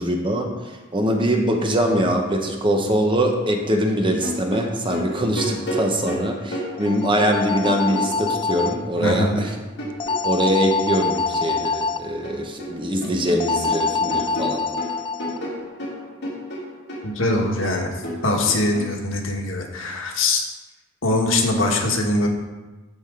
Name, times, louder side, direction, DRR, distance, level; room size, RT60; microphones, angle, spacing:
voice 1, 0.0-9.5 10.2-14.6, equal, 25° right, 3 dB, 1.0 m, -23 dB
sound 1, 4.2-8.4 8.7-11.7 12.0-12.7 13.0-18.9, equal, 60° left, 2.9 m, -32 dB
sound 2, 6.8-8.7 10.0-12.0 13.4-15.4, left 4 dB, 25° left, 0.4 m, -25 dB
voice 2, 9.0-9.4 17.0-20.4 21.0-22.3, left 2 dB, 80° left, 1 dB, 1.5 m, -22 dB
13.0 x 5.1 x 3.8 m, 1.2 s
head